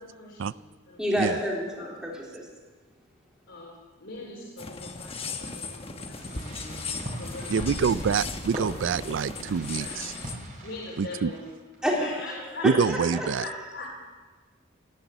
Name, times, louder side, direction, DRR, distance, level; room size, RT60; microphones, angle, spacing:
voice 1, 0.0-1.9 3.5-8.0 9.1-10.2 10.6-11.5 12.0-12.7 13.0-13.1 13.4-13.9, left 2 dB, 65° left, -4 dB, 3.8 m, -42 dB
voice 2, 1.0-2.5 11.8-12.1 12.6-13.3, equal, 5° right, -3 dB, 3.3 m, -28 dB
sound 1, 4.6-10.4, left 3 dB, 30° left, 1.2 m, -36 dB
Fireworks, 6.2-11.7, equal, 40° right, 5.3 m, -41 dB
voice 3, 7.5-10.1 11.0-11.3 12.6-13.4, right 6 dB, 70° right, 19 dB, 0.4 m, -26 dB
17.0 x 10.5 x 8.0 m, 1.3 s
head